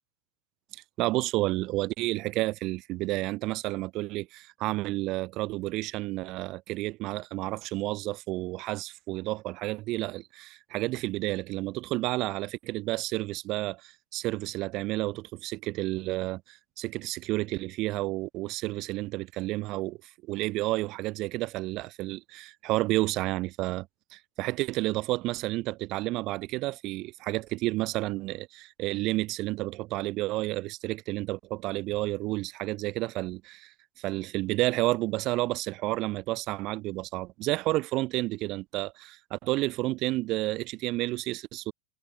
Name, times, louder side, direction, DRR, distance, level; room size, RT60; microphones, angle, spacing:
voice 1, 1.0-20.0 20.3-23.9 24.1-33.7 34.0-41.7, right 19 dB, 40° right, 1.4 m, -31 dB
supercardioid pair, 135°, 0 cm